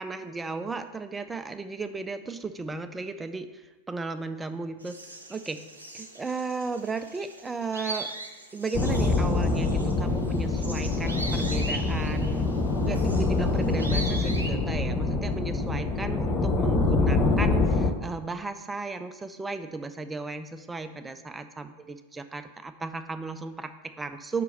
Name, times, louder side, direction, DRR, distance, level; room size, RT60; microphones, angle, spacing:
voice 1, 0.0-5.0 5.3-5.6 5.9-8.2 8.5-24.4, right 3 dB, 10° right, 9 dB, 0.4 m, -35 dB
sound 1, 4.8-14.5, right 2 dB, 80° right, 0.7 m, -40 dB
sound 2, 8.7-17.9, left 3 dB, 25° left, 0.6 m, -25 dB
5.1 x 4.5 x 5.2 m, 1.2 s
figure-of-eight pair, 90°, 0 cm